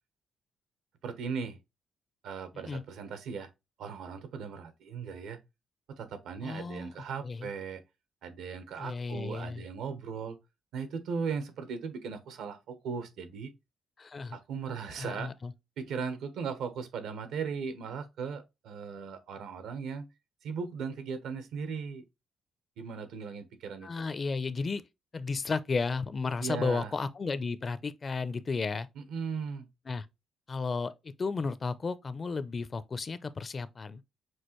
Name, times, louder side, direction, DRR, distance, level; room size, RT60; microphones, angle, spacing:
voice 1, 1.0-1.6 2.2-3.5 3.8-5.4 5.9-7.8 8.2-10.4 10.7-13.5 14.3-15.3 15.8-20.1 20.4-22.0 22.8-23.9 26.4-26.9 29.0-29.7, right 5 dB, 85° right, 0.9 m, -37 dB
voice 2, 6.4-6.9 7.2-7.5 8.8-9.7 14.0-14.4 15.0-15.5 23.8-24.8 25.1-28.9 29.9-30.1 30.5-34.0, left 4 dB, 35° left, 0.5 m, -33 dB
6.2 x 2.5 x 3.0 m
cardioid pair, 90°, 0 cm